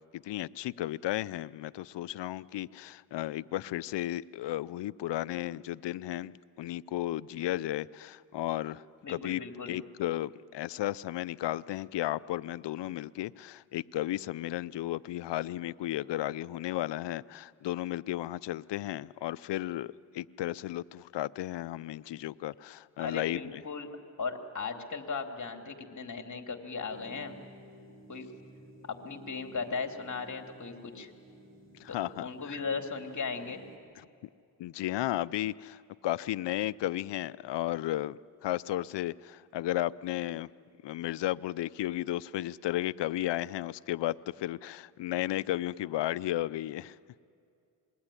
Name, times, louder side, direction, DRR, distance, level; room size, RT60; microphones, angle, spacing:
voice 1, 0.1-8.8 9.1-9.4 9.7-23.4 31.8-32.6 34.6-40.5 40.8-47.0, left 14 dB, 70° left, 18 dB, 0.7 m, -34 dB
voice 2, 9.0-9.8 23.0-23.9 24.2-27.4 28.1-28.3 28.9-31.1 31.9-33.6, left 4 dB, 40° left, 5 dB, 2.9 m, -37 dB
sound 1, 26.9-33.8, right 1 dB, 30° right, 5.8 m, -54 dB
26.0 x 21.5 x 10.0 m, 2.4 s
cardioid pair, 75°, 43 cm